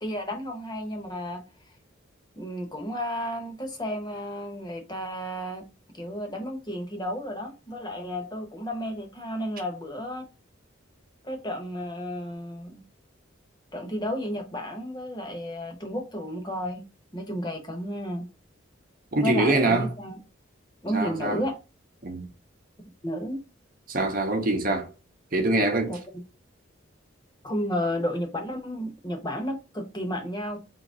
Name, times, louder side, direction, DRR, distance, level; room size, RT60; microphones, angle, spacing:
voice 1, 0.0-1.4 2.4-5.7 6.0-10.2 11.2-12.8 13.7-16.8 17.1-18.3 19.2-20.2 20.8-21.6 23.0-23.4 25.9-26.0 27.4-30.6, equal, 20° left, 0.9 m, -32 dB
voice 2, 19.1-19.9 20.9-21.4 22.0-22.3 23.9-24.9 25.3-25.9, right 2 dB, 45° right, 0.8 m, -24 dB
3.8 x 2.9 x 3.7 m
head